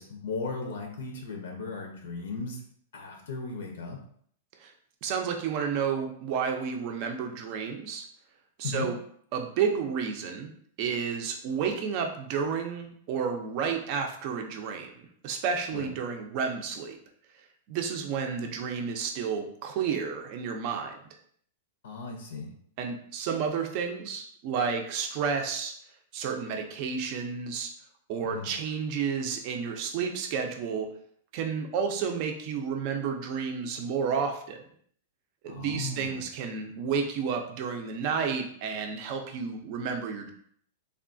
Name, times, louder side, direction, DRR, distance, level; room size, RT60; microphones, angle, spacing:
voice 1, 0.0-2.6 2.9-4.0 8.6-8.9 15.7-15.9 21.8-22.5 28.2-28.5 35.4-36.2, left 3 dB, 80° left, 2 dB, 0.6 m, -36 dB
voice 2, 5.0-8.1 8.6-9.0 9.3-10.5 10.8-17.0 17.7-21.0 22.8-25.7 26.1-27.7 28.1-30.9 31.3-34.6 35.4-40.3, right 6 dB, 40° right, 4 dB, 0.5 m, -31 dB
3.4 x 2.3 x 2.5 m, 0.63 s
supercardioid pair, 160°, 0 cm